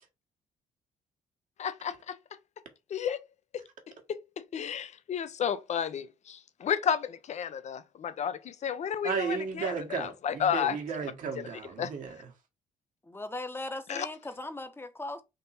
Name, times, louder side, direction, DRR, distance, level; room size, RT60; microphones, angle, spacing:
voice 1, 1.6-2.2 2.9-3.2 3.5-3.6 4.1-4.2 4.5-10.8 11.4-11.5 11.8-11.9 13.9-14.1, left 8 dB, 50° left, 0.6 m, -32 dB
voice 2, 9.0-12.3, right 6 dB, 60° right, 1.4 m, -34 dB
voice 3, 13.1-15.2, left 2 dB, 15° left, 0.9 m, -38 dB
3.7 x 2.7 x 4.1 m
supercardioid pair, 60°, 15 cm